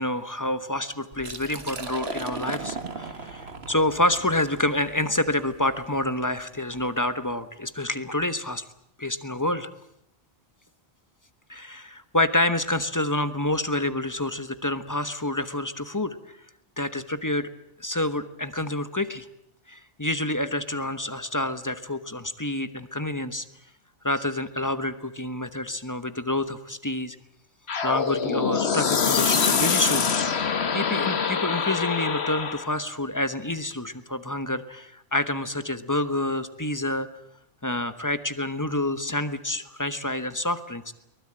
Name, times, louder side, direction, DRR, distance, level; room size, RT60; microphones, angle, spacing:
voice 1, 0.0-8.6 9.0-9.7 11.5-16.4 16.8-17.5 17.8-19.3 19.7-23.4 24.0-27.2 27.8-37.1 37.6-40.9, left 1 dB, 20° left, 11 dB, 1.1 m, -28 dB
Liquid, 1.1-6.9, right 3 dB, 70° right, 2.0 m, -37 dB
sound 1, 27.7-32.7, left 6 dB, 75° left, 1.6 m, -24 dB
23.0 x 20.0 x 8.8 m, 0.78 s
omnidirectional pair, 1.1 m